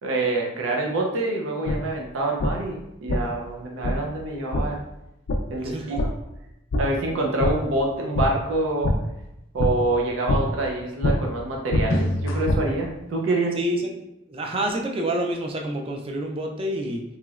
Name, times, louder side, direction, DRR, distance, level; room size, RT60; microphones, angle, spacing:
voice 1, 0.0-4.8 5.5-6.0 6.8-8.9 9.5-13.6, right 2 dB, 85° right, 0 dB, 0.5 m, -26 dB
sound 1, 1.7-1.8 2.4-2.5 3.1-3.2 3.8-3.9 4.5-4.6 5.3-5.4 6.0-6.1 6.7-6.8 7.4-7.5 8.1-8.3 8.8-9.0 9.6-9.7 10.3-10.4 11.0-11.1 11.7-12.6, left 1 dB, 85° left, 0.4 m, -22 dB
voice 2, 5.6-6.0 13.6-13.9 14.3-17.0, right 1 dB, 30° right, 2 dB, 0.3 m, -28 dB
3.0 x 2.9 x 2.3 m, 0.88 s
head